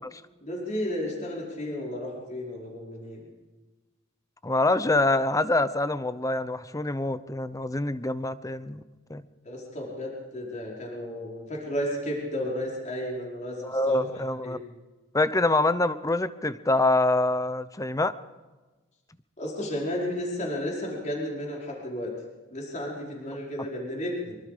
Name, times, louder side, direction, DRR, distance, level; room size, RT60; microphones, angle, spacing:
voice 1, 0.4-3.3 9.4-14.0 14.4-14.6 19.4-22.1 22.5-24.4, left 1 dB, 35° left, -3 dB, 4.9 m, -33 dB
voice 2, 4.4-8.8 9.1-9.2 13.6-14.6 15.1-18.1 23.6-23.7, left 2 dB, 15° left, 14 dB, 0.8 m, -25 dB
24.5 x 23.5 x 5.1 m, 1.2 s
head